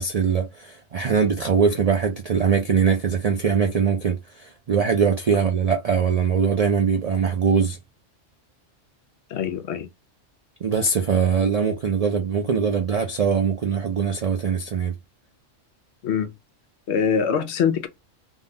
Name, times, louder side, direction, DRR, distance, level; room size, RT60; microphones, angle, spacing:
voice 1, 0.0-7.8 10.6-14.9, right 6 dB, 70° right, 0.3 m, -22 dB
voice 2, 9.3-9.9 16.0-16.3 16.9-17.9, left 7 dB, 65° left, 0.8 m, -23 dB
3.6 x 2.3 x 2.7 m
omnidirectional pair, 1.3 m